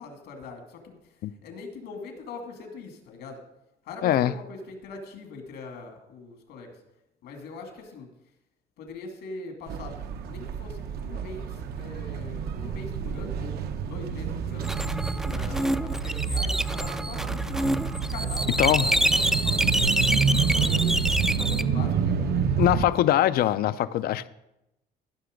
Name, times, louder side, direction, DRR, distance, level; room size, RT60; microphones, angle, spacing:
voice 1, 0.0-3.4 3.8-6.8 7.2-8.1 8.8-14.7 15.2-17.6 18.1-20.0 20.5-23.4 23.8-24.0, left 3 dB, 80° left, 2.4 m, -42 dB
voice 2, 4.0-4.3 18.6-18.8 22.6-24.3, left 12 dB, 65° left, 0.5 m, -22 dB
sound 1, 9.7-22.9, right 6 dB, 70° right, 0.8 m, -28 dB
sound 2, 14.6-21.6, right 1 dB, 5° right, 0.4 m, -27 dB
14.5 x 5.9 x 5.2 m
cardioid pair, 110°, 17 cm